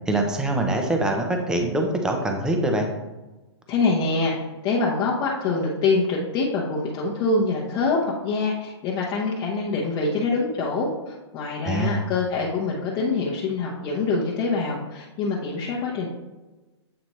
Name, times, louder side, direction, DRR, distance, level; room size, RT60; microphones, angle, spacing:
voice 1, 0.1-2.9 11.6-12.1, right 1 dB, 5° right, 3 dB, 0.5 m, -24 dB
voice 2, 3.7-4.3 4.6-16.1, left 3 dB, 25° left, -5 dB, 0.8 m, -25 dB
7.7 x 4.1 x 3.0 m, 1.1 s
hypercardioid pair, 150°, 15 cm